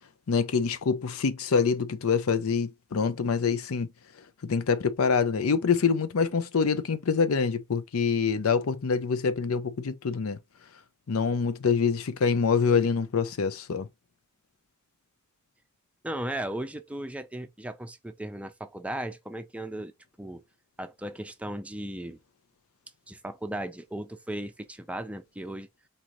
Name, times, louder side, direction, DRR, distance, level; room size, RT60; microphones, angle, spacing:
voice 1, 0.3-3.9 4.4-10.4 11.1-13.9, left 5 dB, 80° left, 0.5 m, -25 dB
voice 2, 16.0-19.9 20.2-20.4 20.8-22.2 23.1-25.7, right 1 dB, 5° right, 0.5 m, -36 dB
4.1 x 3.7 x 3.0 m
head